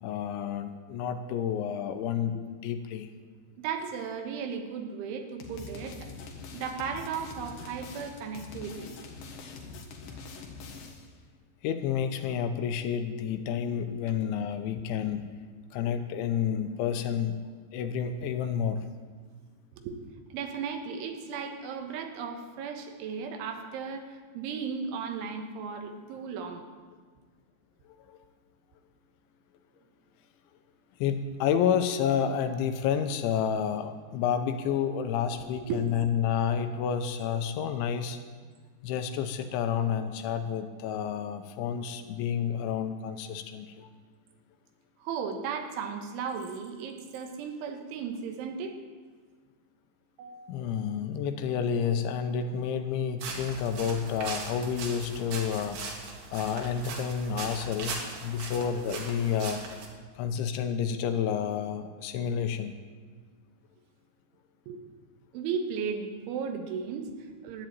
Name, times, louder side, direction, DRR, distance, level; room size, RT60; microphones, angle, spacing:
voice 1, 0.0-3.1 11.6-15.3 15.7-17.4 17.7-18.9 28.1-28.2 31.0-38.2 38.8-43.9 50.5-55.8 56.3-59.6 60.2-62.8, left 8 dB, 80° left, 8 dB, 3.0 m, -30 dB
voice 2, 3.6-6.1 6.5-8.9 10.1-10.2 19.7-20.0 20.3-26.7 32.2-32.4 35.4-35.8 45.0-48.8 50.2-50.6 64.7-64.8 65.3-67.7, right 6 dB, 80° right, 5 dB, 3.7 m, -36 dB
sound 1, 5.4-11.1, left 4 dB, 60° left, 2.3 m, -44 dB
sound 2, 53.2-59.9, right 4 dB, 60° right, 3.7 m, -39 dB
12.5 x 10.5 x 9.0 m, 1.5 s
omnidirectional pair, 5.6 m